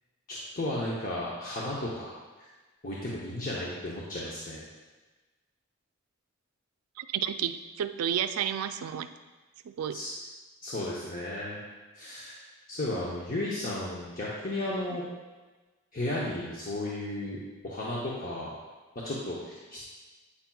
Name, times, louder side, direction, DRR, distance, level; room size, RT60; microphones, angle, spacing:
voice 1, 0.3-2.1 2.4-2.5 2.8-4.6 9.9-10.1 10.6-11.6 11.9-12.4 12.7-15.0 15.9-18.5 19.0-19.8, left 1 dB, 40° left, -6 dB, 0.8 m, -34 dB
voice 2, 7.0-9.1 9.6-10.0, right 9 dB, 90° right, 10 dB, 0.3 m, -31 dB
8.5 x 5.7 x 2.3 m, 1.3 s
head